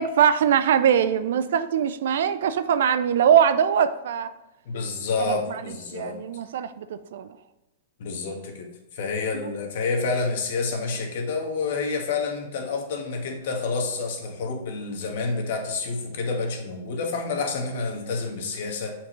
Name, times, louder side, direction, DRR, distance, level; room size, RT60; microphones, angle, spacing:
voice 1, 0.0-4.3 5.2-7.3 9.3-9.5, right 8 dB, 70° right, 12 dB, 0.4 m, -22 dB
voice 2, 4.7-6.2 8.0-18.9, left 4 dB, 65° left, 3 dB, 1.4 m, -29 dB
7.4 x 4.4 x 3.1 m, 1.0 s
hypercardioid pair, 115°, 0 cm